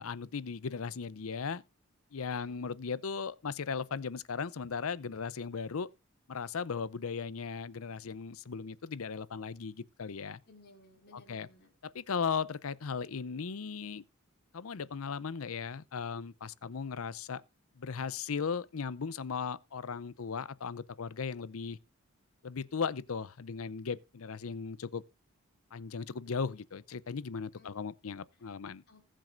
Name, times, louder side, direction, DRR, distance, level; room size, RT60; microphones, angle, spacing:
voice 1, 0.0-1.6 2.1-5.9 6.3-10.4 11.1-11.5 11.8-14.0 14.5-17.4 17.8-21.8 22.4-25.0 25.7-28.8, left 5 dB, 75° left, 0.6 m, -37 dB
voice 2, 2.2-2.6 10.4-11.7 27.5-27.7 28.9-29.0, left 2 dB, 50° left, 4.7 m, -59 dB
20.0 x 7.6 x 2.6 m
head